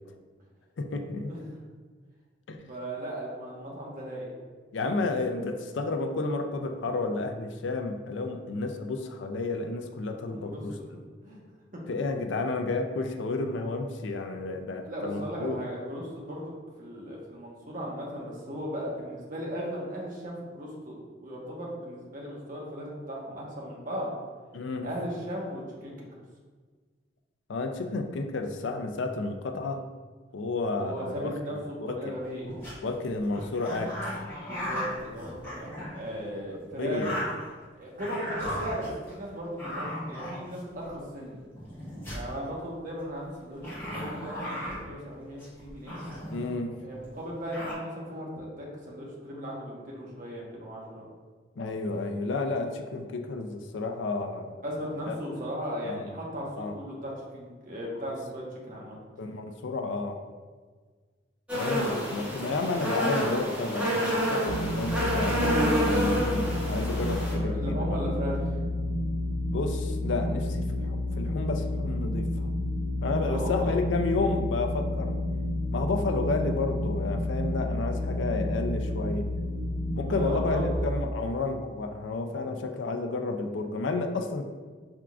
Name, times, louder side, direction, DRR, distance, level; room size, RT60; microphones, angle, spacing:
voice 1, 0.8-1.3 2.5-2.6 4.7-10.7 11.9-15.6 24.5-24.9 27.5-29.8 30.3-31.3 31.8-32.1 32.8-34.1 36.8-37.2 46.3-46.8 51.6-54.5 55.1-55.2 55.9-56.1 56.6-56.8 59.2-60.2 61.5-67.9 69.5-72.5 73.0-75.2 75.7-79.3 79.9-84.4, left 3 dB, 75° left, 5 dB, 0.4 m, -31 dB
voice 2, 2.7-4.3 10.3-10.6 10.9-11.4 11.7-12.0 12.3-12.4 14.8-16.5 16.8-24.1 24.8-26.1 30.7-32.5 34.5-37.1 37.7-41.4 42.1-46.0 46.8-51.0 54.6-59.0 67.3-68.4 73.2-73.8 80.0-80.9, equal, 45° right, -3 dB, 1.0 m, -37 dB
sound 1, 32.2-32.7 33.3-36.1 36.7-37.6 38.0-39.1 39.6-40.8 41.5-42.3 43.6-44.8 45.4-46.5 47.0-47.1 47.2-47.7, equal, 15° left, 1.5 m, -36 dB
sound 2, 61.5-67.3, equal, 5° right, 1.1 m, -28 dB
sound 3, 64.5-80.8, left 1 dB, 75° right, 0.5 m, -30 dB
5.8 x 3.6 x 2.4 m, 1.5 s
head